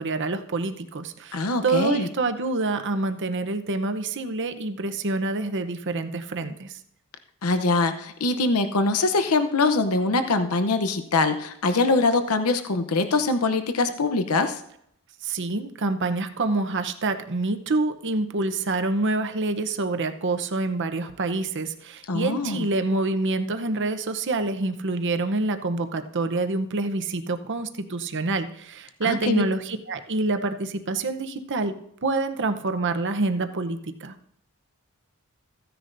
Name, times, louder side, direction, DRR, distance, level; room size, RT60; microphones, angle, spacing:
voice 1, 0.0-6.8 15.2-31.7 32.0-34.1, right 3 dB, 55° right, 8 dB, 0.8 m, -27 dB
voice 2, 1.3-2.1 7.4-14.6 22.1-22.7 29.0-29.4, left 3 dB, 80° left, 9 dB, 0.8 m, -23 dB
15.0 x 10.0 x 2.6 m, 0.73 s
head